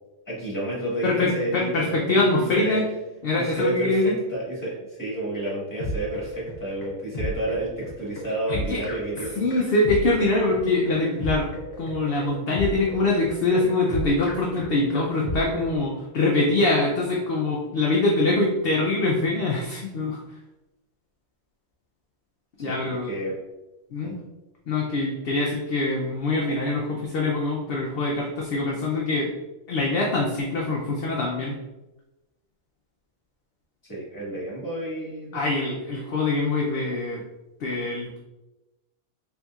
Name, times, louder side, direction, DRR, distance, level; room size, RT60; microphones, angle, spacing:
voice 1, 0.3-2.8 3.3-9.5 22.6-23.4 24.0-24.2 33.8-35.5, right 1 dB, 15° left, -6 dB, 1.4 m, -30 dB
voice 2, 1.0-2.8 3.2-4.2 8.5-8.8 9.4-11.5 11.8-20.2 22.6-23.1 23.9-24.2 24.7-29.3 29.7-31.5 35.3-37.2 37.6-38.2, left 2 dB, 60° left, -2 dB, 0.7 m, -24 dB
sound 1, 5.1-15.8, equal, 75° left, 1.2 m, -33 dB
4.1 x 3.5 x 2.3 m, 1.0 s
omnidirectional pair, 1.2 m